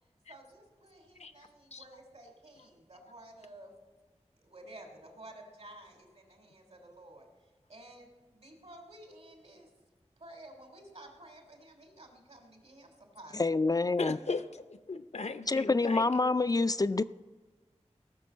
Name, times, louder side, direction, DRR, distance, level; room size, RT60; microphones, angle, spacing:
voice 1, 0.3-3.7 4.4-9.7 10.2-13.4 15.8-15.9, right 1 dB, 70° right, 2.9 m, -52 dB
voice 2, 13.3-14.2 15.5-17.0, left 3 dB, 35° left, 0.3 m, -27 dB
voice 3, 14.0-16.5, left 4 dB, 70° left, 0.7 m, -37 dB
17.0 x 6.1 x 7.2 m
wide cardioid pair, 45°, 12 cm